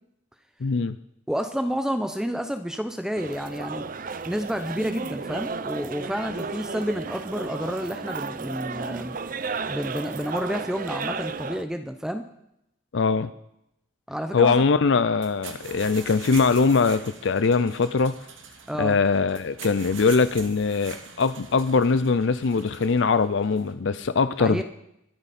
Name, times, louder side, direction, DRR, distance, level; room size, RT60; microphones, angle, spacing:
voice 1, 0.6-1.0 12.9-13.3 14.3-18.1 18.8-24.6, left 4 dB, 70° left, 13 dB, 0.5 m, -22 dB
voice 2, 1.3-3.9 4.2-9.2 9.7-12.3 14.1-14.6 18.7-19.0 24.4-24.6, equal, 5° right, 7 dB, 0.7 m, -30 dB
sound 1, 3.2-11.6, right 4 dB, 45° right, 0.6 m, -33 dB
sound 2, 15.1-23.7, right 5 dB, 85° right, 2.2 m, -43 dB
24.5 x 8.9 x 4.3 m, 0.81 s
head